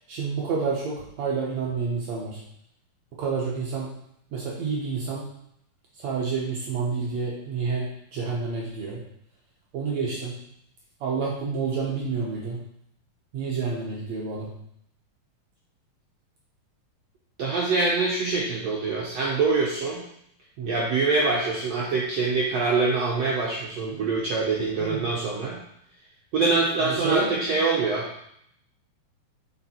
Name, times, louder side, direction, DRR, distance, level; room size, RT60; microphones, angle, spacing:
voice 1, 0.1-2.4 3.2-3.9 4.3-5.3 6.0-9.0 9.7-10.3 11.0-12.6 13.3-14.5 20.6-20.7 24.8-25.0 26.8-27.3, right 4 dB, 70° right, -3 dB, 1.8 m, -29 dB
voice 2, 17.4-20.0 20.7-25.6 26.3-28.1, right 3 dB, 85° right, -4 dB, 1.4 m, -24 dB
6.9 x 5.2 x 4.3 m, 0.73 s
omnidirectional pair, 4.4 m